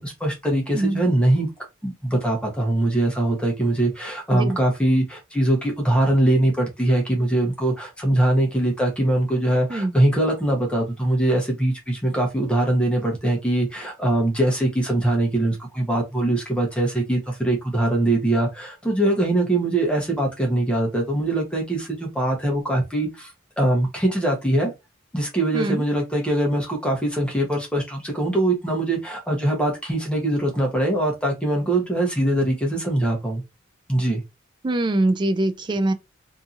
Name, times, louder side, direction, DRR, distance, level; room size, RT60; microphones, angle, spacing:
voice 1, 0.0-1.5 1.8-23.3 23.6-24.7 25.1-33.4 33.9-34.2, right 1 dB, 5° left, 0.8 m, -22 dB
voice 2, 25.5-25.8 34.6-35.9, right 2 dB, 25° right, 0.3 m, -23 dB
2.7 x 2.6 x 2.4 m
head